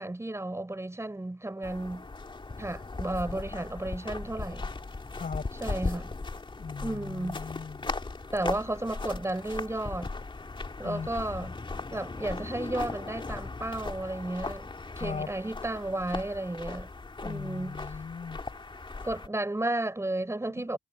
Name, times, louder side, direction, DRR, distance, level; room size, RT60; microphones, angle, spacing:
voice 1, 0.0-2.1 2.6-4.7 5.6-6.1 6.8-7.4 8.3-10.1 10.8-11.6 11.9-14.7 15.0-16.9 17.2-17.8 19.0-20.8, right 1 dB, 15° right, 5.5 m, -33 dB
sound 1, 1.6-19.3, left 3 dB, 30° left, 2.8 m, -38 dB
voice 2, 5.1-5.5 6.6-7.9 10.8-11.1 11.4-11.5 14.9-15.3 17.2-18.4 20.6-20.8, left 5 dB, 50° left, 7.9 m, -38 dB
supercardioid pair, 50°, 17 cm